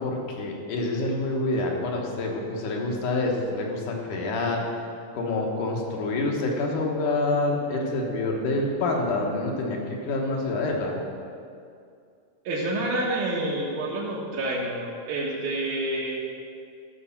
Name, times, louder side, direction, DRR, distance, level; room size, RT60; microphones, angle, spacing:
voice 1, 0.0-4.6 5.1-11.0, left 2 dB, 75° left, 0 dB, 2.9 m, -27 dB
voice 2, 12.5-16.2, right 1 dB, 75° right, -6 dB, 2.7 m, -28 dB
13.5 x 6.4 x 5.8 m, 2.4 s
omnidirectional pair, 3.7 m